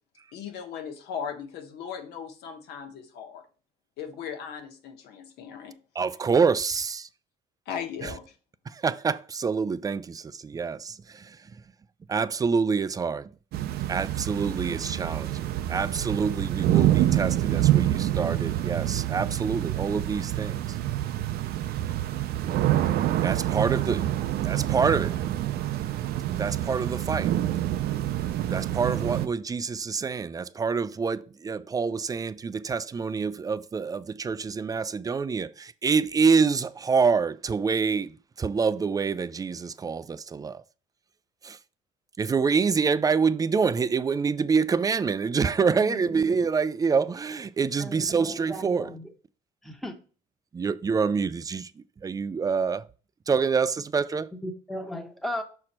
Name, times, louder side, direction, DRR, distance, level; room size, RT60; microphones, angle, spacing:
voice 1, 0.3-3.4 4.0-5.8 7.6-8.3, left 7 dB, 75° left, 1.4 m, -37 dB
voice 2, 6.0-7.1 8.0-8.1 8.7-11.4 12.1-13.3 13.9-20.6 23.2-24.0 24.4-25.2 26.4-27.4 28.5-40.6 41.4-41.6 42.2-48.9 50.5-52.9 53.3-54.3, right 5 dB, 20° right, 0.3 m, -26 dB
sound 1, 13.5-29.3, right 13 dB, 70° right, 0.6 m, -27 dB
voice 3, 47.8-49.1 49.6-50.0 54.4-55.4, left 1 dB, ahead, 1.0 m, -36 dB
6.4 x 4.2 x 4.3 m
cardioid pair, 110°, 17 cm